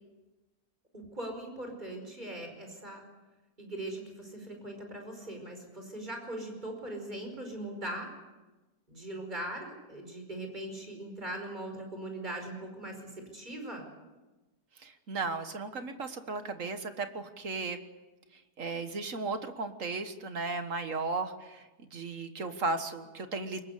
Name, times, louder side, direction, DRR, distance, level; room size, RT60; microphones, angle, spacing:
voice 1, 0.9-3.0 3.6-8.1 8.9-13.9, right 1 dB, 25° right, 3 dB, 5.2 m, -40 dB
voice 2, 14.8-17.8 18.6-21.6 21.9-23.6, right 3 dB, 50° right, 8 dB, 1.8 m, -35 dB
24.0 x 20.5 x 8.2 m, 1.2 s
omnidirectional pair, 1.8 m